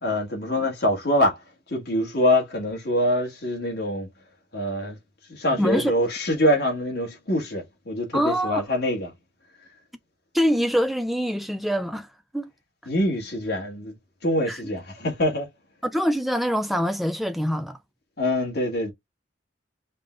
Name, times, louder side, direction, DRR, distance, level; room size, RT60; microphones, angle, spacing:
voice 1, 0.0-1.4 1.7-4.1 4.5-5.0 5.3-9.1 12.9-13.9 14.2-15.5 18.2-18.9, left 1 dB, 55° left, 1.5 m, -24 dB
voice 2, 5.6-5.9 8.1-8.6 10.3-12.1 12.3-12.5 14.5-14.6 15.8-17.8, equal, ahead, 0.3 m, -24 dB
5.2 x 2.1 x 3.8 m
head